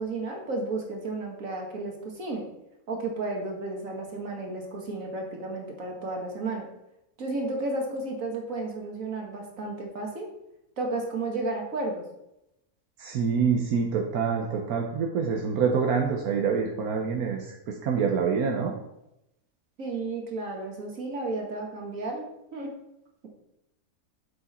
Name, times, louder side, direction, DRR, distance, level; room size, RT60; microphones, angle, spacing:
voice 1, 0.0-2.5 2.9-6.7 7.2-10.3 10.8-12.0 19.8-22.3 22.5-22.7, right 2 dB, 65° right, 1 dB, 2.2 m, -32 dB
voice 2, 13.0-18.7, right 6 dB, 90° right, 1 dB, 1.4 m, -26 dB
8.1 x 7.2 x 4.3 m, 0.86 s
omnidirectional pair, 1.5 m